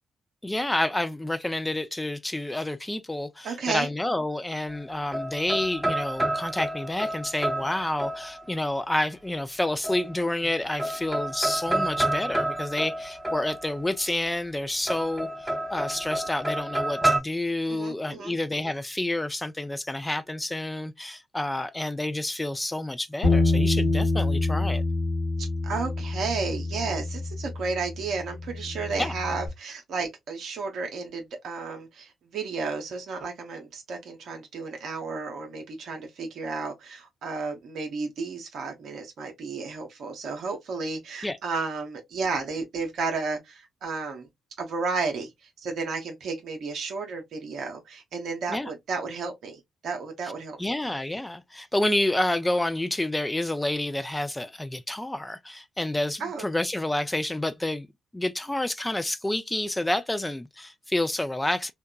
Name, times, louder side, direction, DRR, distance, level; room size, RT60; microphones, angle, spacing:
voice 1, 0.4-24.8 29.0-29.1 41.2-41.4 48.5-48.7 50.6-57.9 58.1-61.7, left 1 dB, 15° left, 0.4 m, -29 dB
voice 2, 3.4-3.9 17.7-18.3 25.4-44.3 44.6-45.3 45.6-50.7 56.2-56.4, right 4 dB, 65° right, 0.7 m, -32 dB
sound 1, 4.7-8.7 9.8-10.5 10.8-14.0 14.9-17.2, right 1 dB, 10° right, 0.8 m, -29 dB
Bass guitar, 23.2-29.5, left 2 dB, 80° left, 1.0 m, -27 dB
2.8 x 2.2 x 2.2 m
hypercardioid pair, 40°, 0 cm